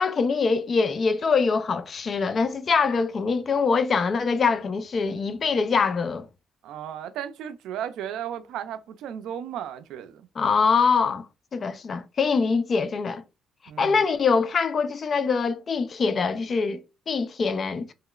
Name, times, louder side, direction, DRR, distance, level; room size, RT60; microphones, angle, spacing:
voice 1, 0.0-6.3 10.4-11.3 11.5-13.2 13.8-17.9, left 5 dB, 45° left, 0.4 m, -24 dB
voice 2, 6.6-10.3 13.7-14.0, right 10 dB, 85° right, 0.4 m, -35 dB
3.0 x 2.8 x 2.3 m
cardioid pair, 90°, 0 cm